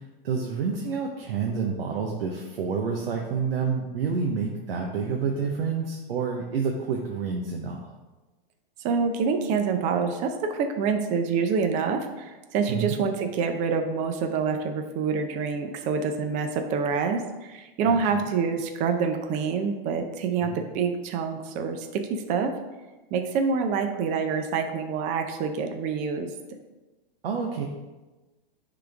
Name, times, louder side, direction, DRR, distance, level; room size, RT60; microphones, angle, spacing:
voice 1, 0.0-7.9 12.7-12.9 17.8-18.2 20.4-20.6 27.2-27.7, right 5 dB, 80° right, 0 dB, 1.0 m, -29 dB
voice 2, 8.8-22.6 23.1-26.3, right 5 dB, 25° right, 6 dB, 0.6 m, -26 dB
10.0 x 3.8 x 3.5 m, 1.2 s
hypercardioid pair, 145°, 29 cm